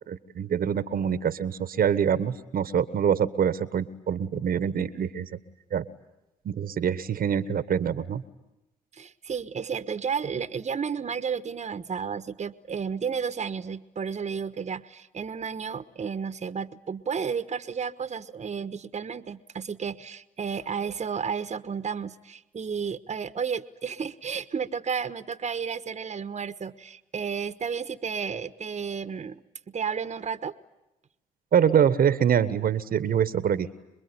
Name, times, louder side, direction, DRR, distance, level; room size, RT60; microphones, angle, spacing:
voice 1, 0.1-5.3 5.7-5.9 6.4-8.2 31.5-33.7, right 8 dB, 55° right, 15 dB, 1.4 m, -25 dB
voice 2, 8.9-30.5, right 6 dB, 40° right, 12 dB, 1.3 m, -32 dB
27.0 x 21.5 x 9.7 m, 0.95 s
hypercardioid pair, 50°, 18 cm